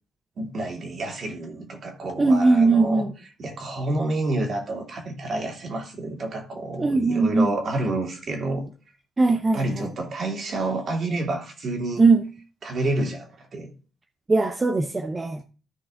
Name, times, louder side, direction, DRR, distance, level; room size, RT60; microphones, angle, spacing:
voice 1, 0.4-3.0 3.4-8.6 9.3-12.0 12.6-13.7, right 2 dB, 50° right, 2.6 m, -29 dB
voice 2, 2.2-3.2 6.8-7.5 9.2-9.9 12.0-12.3 14.3-15.4, right 3 dB, 25° right, 0.7 m, -20 dB
13.5 x 4.8 x 3.7 m
cardioid pair, 90°, 0 cm